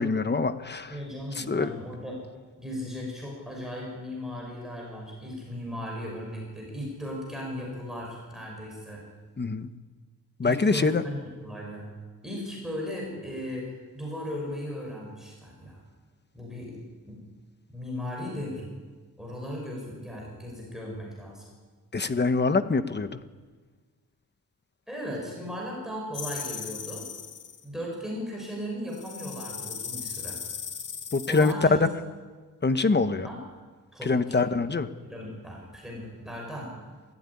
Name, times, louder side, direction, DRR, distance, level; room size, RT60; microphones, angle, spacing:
voice 1, 0.0-1.0 1.3-1.7 9.4-9.7 10.4-11.0 21.9-23.2 31.1-31.9 32.6-33.3 34.0-34.9, left 3 dB, 30° left, 11 dB, 1.0 m, -24 dB
voice 2, 0.9-2.1 2.6-9.0 10.4-11.8 12.2-15.8 16.3-16.8 17.0-17.2 17.7-18.7 19.2-21.4 24.9-27.1 27.6-30.4 31.3-31.8 33.2-33.4 33.9-34.4 35.0-36.7, left 1 dB, ahead, -2 dB, 6.4 m, -37 dB
sound 1, 26.1-27.6 28.9-31.5, left 7 dB, 55° left, 1.3 m, -38 dB
26.0 x 15.0 x 9.9 m, 1.4 s
wide cardioid pair, 160°, 36 cm